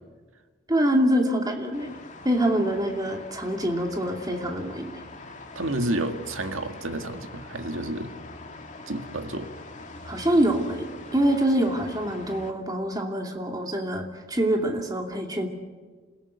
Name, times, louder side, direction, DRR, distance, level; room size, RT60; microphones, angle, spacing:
voice 1, 0.7-1.9 2.2-4.9 10.0-15.5, right 1 dB, 20° right, 2 dB, 2.7 m, -25 dB
sound 1, 1.7-12.5, left 2 dB, 35° left, 2.3 m, -43 dB
voice 2, 5.6-8.1 8.9-9.5, right 1 dB, 80° right, 7 dB, 1.9 m, -30 dB
27.5 x 17.0 x 8.2 m, 1.4 s
head